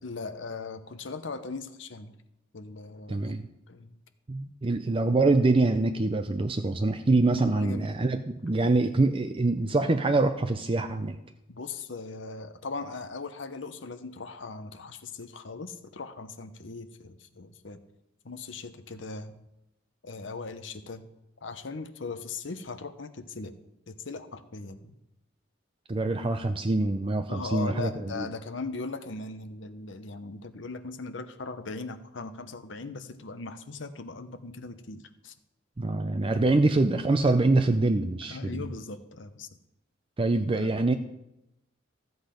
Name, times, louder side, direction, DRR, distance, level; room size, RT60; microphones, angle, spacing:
voice 1, 0.0-2.1 2.5-3.3 3.7-3.9 7.5-8.0 11.5-17.8 18.2-19.3 20.0-21.1 21.4-23.5 23.9-24.9 27.3-35.3 38.2-39.5 40.6-40.9, left 3 dB, 70° left, 9 dB, 0.9 m, -39 dB
voice 2, 3.1-3.5 4.3-11.2 25.9-28.3 35.8-38.7 40.2-40.9, right 2 dB, 30° right, 8 dB, 0.5 m, -25 dB
13.5 x 7.9 x 5.1 m, 0.90 s
head